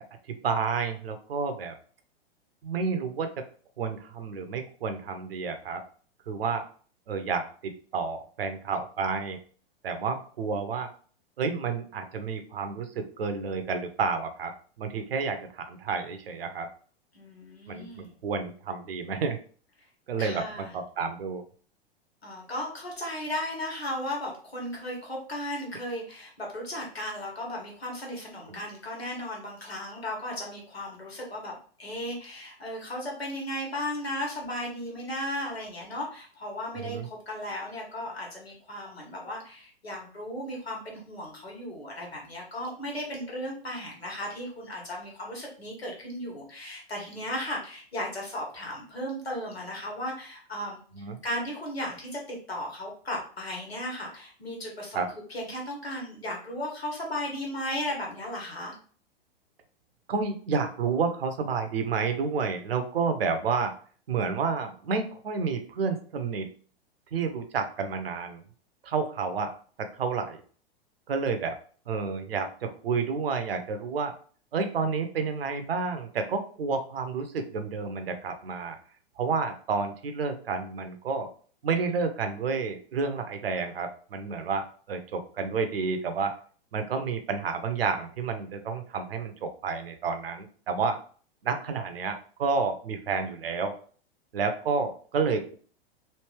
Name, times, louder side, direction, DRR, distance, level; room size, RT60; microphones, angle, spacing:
voice 1, 0.3-1.7 2.6-3.4 3.8-5.8 6.3-6.6 7.1-9.4 9.8-10.9 11.4-14.5 14.8-16.7 17.7-19.4 20.1-21.4 28.5-28.6 36.8-37.1 51.0-51.2 54.9-55.1 60.1-63.7 64.1-66.5 67.1-68.4 68.8-69.5 69.8-70.4 71.1-71.6 71.9-74.1 74.5-78.8 79.2-81.3 81.6-86.3 86.7-91.0 91.4-93.8 94.3-95.5, right 5 dB, 70° right, 7 dB, 0.8 m, -30 dB
voice 2, 17.1-18.1 20.2-20.7 22.2-58.7, left 1 dB, 85° left, -1 dB, 1.5 m, -36 dB
3.3 x 2.6 x 3.2 m, 0.43 s
figure-of-eight pair, 105°, 30 cm